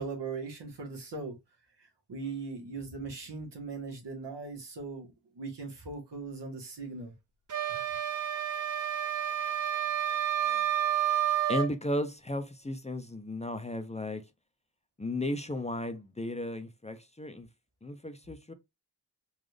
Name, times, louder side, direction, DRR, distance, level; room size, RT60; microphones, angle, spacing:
voice 1, 0.0-1.4 1.8-7.1 7.7-7.8, right 4 dB, 85° right, 1.5 m, -39 dB
sound 1, 7.5-11.7, right 10 dB, 50° right, 0.7 m, -30 dB
voice 2, 11.5-14.2 15.0-17.5 17.8-18.5, left 1 dB, 15° left, 0.5 m, -34 dB
3.9 x 2.4 x 3.3 m
wide cardioid pair, 70°, 40 cm